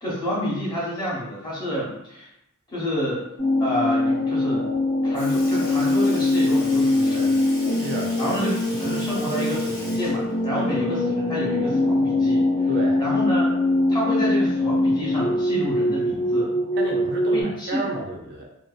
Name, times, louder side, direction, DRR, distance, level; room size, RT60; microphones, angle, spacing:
voice 1, 0.0-2.3 2.7-3.3 3.6-4.7 5.0-7.4 8.2-12.7 13.0-13.5 13.9-16.5 17.3-17.9, equal, 20° left, -7 dB, 0.8 m, -29 dB
sound 1, 3.4-17.4, left 2 dB, 85° left, 1.1 m, -22 dB
Sink (filling or washing) / Liquid, 4.7-4.8 5.1-11.2 11.6-11.7 13.2-13.3 14.3-14.4 15.2-15.4 16.2-16.3, left 1 dB, 50° left, 0.7 m, -41 dB
voice 2, 7.8-8.3 10.5-10.6 12.7-13.0 16.8-18.5, right 2 dB, 50° right, -1 dB, 0.4 m, -31 dB
2.5 x 2.2 x 2.3 m, 0.81 s
head